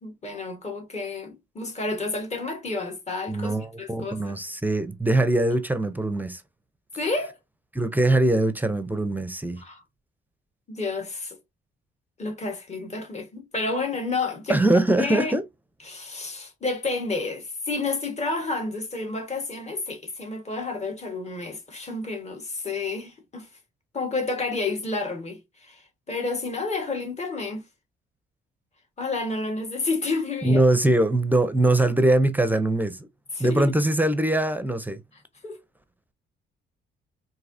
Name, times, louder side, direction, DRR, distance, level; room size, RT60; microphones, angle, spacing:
voice 1, 0.0-4.4 7.0-7.3 9.6-9.8 10.7-11.4 12.2-14.6 15.0-15.3 15.8-23.5 23.9-27.6 29.0-30.6 33.3-33.7 35.4-35.6, left 3 dB, 35° left, 1.6 m, -30 dB
voice 2, 3.3-6.4 7.7-9.6 14.5-15.4 30.4-33.0 33.4-35.0, right 1 dB, 10° right, 0.6 m, -22 dB
4.6 x 2.8 x 2.7 m
cardioid pair, 90°, 20 cm